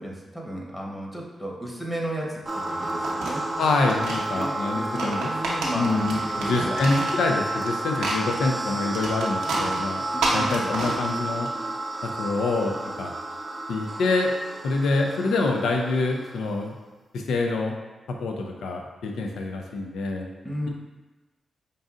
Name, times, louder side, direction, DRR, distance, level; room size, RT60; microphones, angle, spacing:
voice 1, 0.0-3.4 4.3-7.1 10.1-10.7 20.4-20.7, right 1 dB, 15° left, -2 dB, 1.0 m, -34 dB
sound 1, 2.5-16.6, right 2 dB, 35° right, 0.4 m, -31 dB
sound 2, 2.7-4.2 4.8-7.7 8.0-11.5, right 2 dB, 90° right, 0.6 m, -30 dB
voice 2, 3.6-5.3 5.7-10.0 10.3-11.5 12.0-13.1 13.7-14.3 14.6-16.8 17.1-17.8 18.1-20.3, left 3 dB, 80° left, 2 dB, 0.4 m, -26 dB
5.2 x 2.6 x 2.4 m, 1.2 s
supercardioid pair, 50°, 0 cm